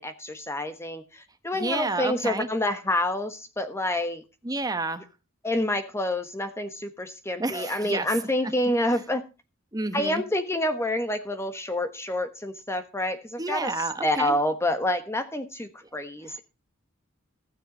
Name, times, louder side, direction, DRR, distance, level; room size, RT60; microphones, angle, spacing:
voice 1, 0.0-4.2 5.4-9.2 9.9-13.7 14.0-16.4, left 1 dB, 15° left, 9 dB, 1.2 m, -28 dB
voice 2, 1.5-2.5 4.4-5.0 7.4-8.1 8.9-9.0 9.7-10.2 13.4-14.4 16.3-16.4, right 2 dB, 20° right, 10 dB, 1.0 m, -30 dB
15.5 x 6.7 x 5.3 m, 0.31 s
head